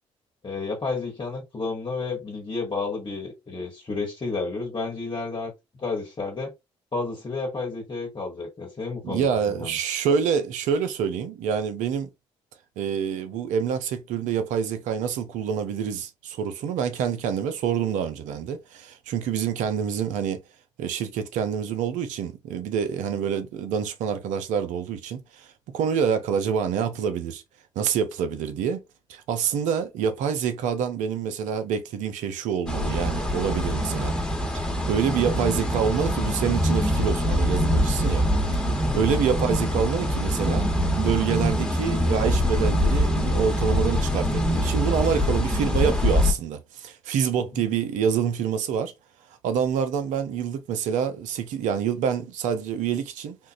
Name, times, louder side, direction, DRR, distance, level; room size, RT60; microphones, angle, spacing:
voice 1, 0.4-5.5 5.8-6.5 6.9-9.8 38.7-39.0 47.5-47.6, left 3 dB, 40° left, 1.2 m, -31 dB
voice 2, 9.0-12.1 12.8-20.4 20.8-27.4 27.8-28.8 29.1-34.2 34.5-38.2 38.9-40.7 40.9-48.9 49.4-53.4, right 7 dB, 80° right, 0.6 m, -27 dB
sound 1, 32.7-46.3, equal, 5° left, 1.3 m, -24 dB
3.6 x 2.4 x 2.6 m
supercardioid pair, 50°, 12 cm